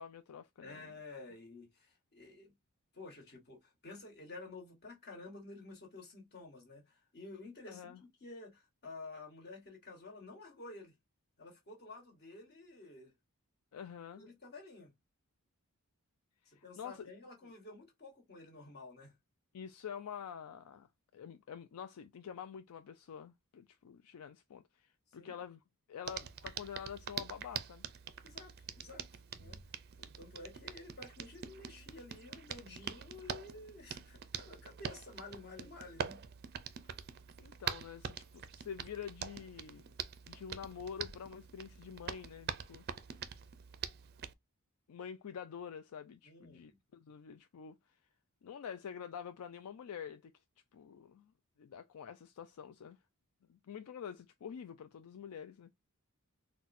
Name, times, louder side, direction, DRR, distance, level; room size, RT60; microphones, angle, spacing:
voice 1, 0.0-0.9 7.7-8.0 13.7-14.3 16.5-17.1 19.5-25.6 25.9-27.8 37.4-39.9 40.3-42.8 44.9-47.9 48.4-50.3 50.7-51.3 51.6-53.0 53.5-55.7, left 7 dB, 75° left, 0.4 m, -47 dB
voice 2, 0.6-2.5 2.9-10.9 11.4-13.1 14.2-14.9 16.4-19.1 25.1-25.3 28.2-29.6 30.0-36.2 46.2-46.8, left 3 dB, 45° left, 1.5 m, -51 dB
Hands, 26.0-44.3, right 8 dB, 45° right, 0.4 m, -45 dB
4.0 x 2.2 x 2.5 m
head